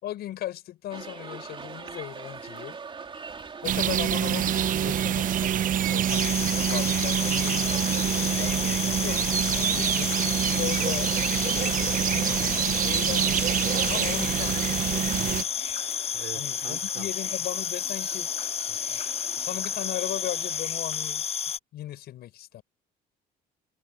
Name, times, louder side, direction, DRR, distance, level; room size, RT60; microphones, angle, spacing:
voice 1, 0.0-2.8 3.6-9.4 9.7-10.2 10.6-11.1 11.4-13.4 13.9-15.5 16.3-18.3 19.4-21.3 21.7-22.6, left 13 dB, 70° left, 5.8 m, -37 dB
sound 1, 0.9-20.6, right 5 dB, 30° right, 3.6 m, -45 dB
sound 2, 3.6-15.4, right 10 dB, 55° right, 0.8 m, -26 dB
sound 3, 6.1-21.6, left 8 dB, 35° left, 0.7 m, -31 dB
voice 2, 16.1-17.1 18.7-19.0, right 12 dB, 70° right, 3.7 m, -44 dB
cardioid pair, 110°, 17 cm